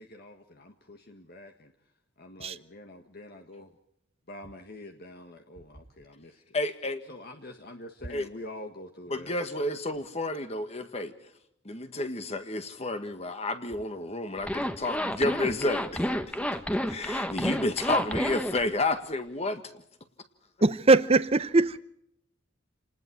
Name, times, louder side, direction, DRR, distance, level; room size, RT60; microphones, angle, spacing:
voice 1, 0.0-1.7 2.2-3.7 4.3-6.4 7.1-9.4, left 1 dB, 50° left, 1.6 m, -45 dB
voice 2, 6.5-7.0 8.1-8.3 9.1-11.1 11.7-16.1 16.9-19.8, left 2 dB, 30° left, 1.7 m, -30 dB
Zipper (clothing), 14.4-18.6, equal, 5° left, 1.2 m, -30 dB
voice 3, 20.6-21.8, right 3 dB, 30° right, 0.7 m, -21 dB
28.5 x 20.0 x 4.7 m
head